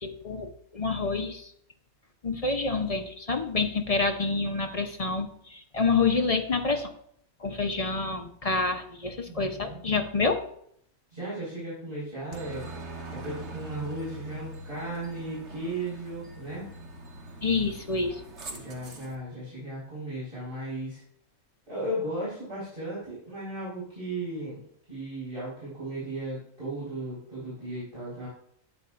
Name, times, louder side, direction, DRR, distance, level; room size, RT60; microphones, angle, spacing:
voice 1, 0.0-1.5 2.2-6.9 7.4-10.4 17.4-18.2, left 4 dB, 35° left, 5 dB, 0.6 m, -28 dB
voice 2, 9.2-9.8 11.1-12.7 13.1-16.7 18.4-21.0 21.7-24.6 24.9-28.3, right 1 dB, 40° right, -10 dB, 4.9 m, -36 dB
Aircraft, 12.3-19.1, right 2 dB, 60° right, 1.5 m, -42 dB
11.5 x 9.1 x 2.5 m, 0.66 s
omnidirectional pair, 1.4 m